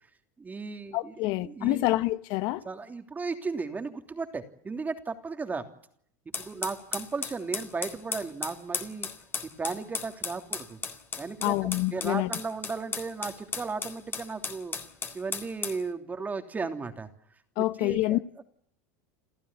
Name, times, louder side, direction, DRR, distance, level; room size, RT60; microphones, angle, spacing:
voice 1, 0.4-1.9 2.6-5.6 6.2-9.1 9.6-10.8 11.2-14.7 15.1-17.1 17.6-18.4, right 4 dB, 20° right, 3.1 m, -35 dB
voice 2, 0.9-2.6 11.4-12.3 17.6-18.2, left 18 dB, 55° left, 1.1 m, -27 dB
sound 1, 6.3-15.8, left 5 dB, 25° left, 3.7 m, -36 dB
29.0 x 14.5 x 10.0 m
hypercardioid pair, 105°, 9 cm